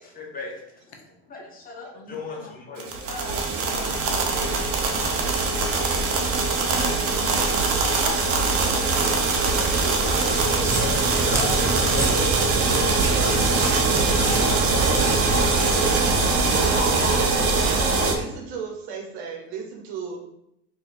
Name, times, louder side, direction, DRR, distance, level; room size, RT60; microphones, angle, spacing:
voice 1, 0.0-4.2 7.9-8.8 9.5-15.8 16.4-17.4, left 2 dB, 25° left, -1 dB, 1.1 m, -35 dB
voice 2, 1.9-2.5 2.8-4.7 5.6-7.6, left 4 dB, 85° left, 2 dB, 0.8 m, -45 dB
sound 1, 2.8-18.1, right 3 dB, 45° right, 0.7 m, -22 dB
sound 2, 10.4-15.5, right 2 dB, 10° right, 0.4 m, -31 dB
voice 3, 18.0-20.2, right 6 dB, 80° right, 1 dB, 1.0 m, -36 dB
4.1 x 2.7 x 2.5 m, 0.79 s
supercardioid pair, 105°, 32 cm